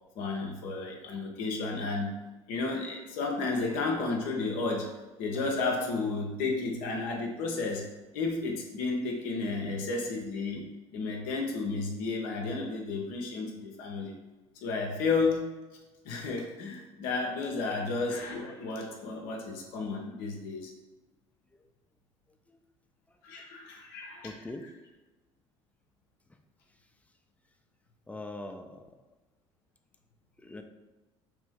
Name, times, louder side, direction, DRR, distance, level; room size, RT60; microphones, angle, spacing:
voice 1, 0.2-2.1 2.5-4.9 5.2-7.9 8.1-10.7 10.9-14.1 14.6-15.5 16.0-20.7 23.2-24.3, left 3 dB, 65° left, 1 dB, 0.6 m, -32 dB
voice 2, 24.2-24.6 28.1-28.9 30.4-30.6, left 2 dB, 10° left, 5 dB, 0.4 m, -41 dB
2.9 x 2.6 x 3.6 m, 1.1 s
figure-of-eight pair, 55°, 15 cm